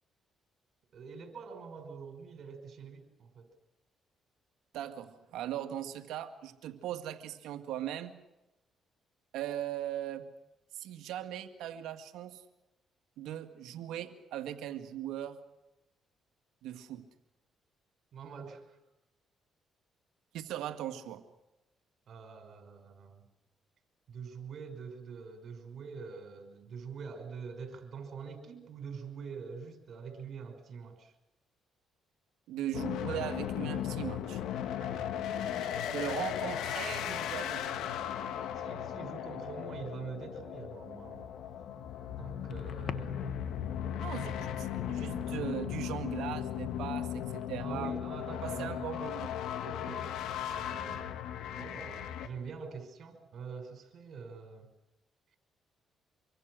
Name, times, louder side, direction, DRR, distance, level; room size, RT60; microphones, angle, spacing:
voice 1, 0.9-3.5 18.1-18.8 22.1-23.2 24.1-31.1 34.8-36.0 38.5-41.3 42.1-43.2 47.6-48.9 49.6-50.1 50.5-51.1 51.4-54.7, right 5 dB, 60° right, 6 dB, 5.6 m, -45 dB
voice 2, 4.7-8.1 9.3-10.3 10.7-12.4 13.2-15.4 16.6-17.0 20.3-21.2 32.5-34.4 35.9-37.6 44.0-47.9 48.4-49.3, right 11 dB, 90° right, 8 dB, 2.0 m, -39 dB
sound 1, 32.7-52.3, left 9 dB, 85° left, 1.9 m, -37 dB
sound 2, 41.0-49.2, left 7 dB, 60° left, 1.5 m, -51 dB
26.0 x 24.0 x 6.5 m, 0.95 s
cardioid pair, 90°, 0 cm